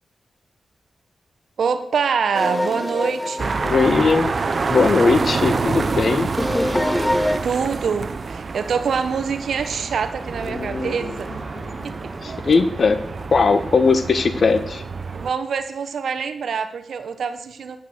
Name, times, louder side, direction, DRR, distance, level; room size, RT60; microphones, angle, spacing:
voice 1, 1.6-3.6 7.4-11.4 11.8-11.9 15.1-17.8, right 6 dB, 80° right, 9 dB, 1.0 m, -25 dB
sound 1, 2.3-5.7 6.3-7.4, left 1 dB, 15° left, 0.8 m, -25 dB
sound 2, 3.4-15.3, right 4 dB, 55° right, 0.7 m, -27 dB
voice 2, 3.6-4.3 4.7-6.3 10.4-11.1 12.2-13.0 13.3-14.8, left 4 dB, 60° left, 10 dB, 1.2 m, -19 dB
sound 3, 10.2-15.3, right 1 dB, 30° right, 3.2 m, -39 dB
9.5 x 8.0 x 6.6 m, 0.75 s
cardioid pair, 50°, 0 cm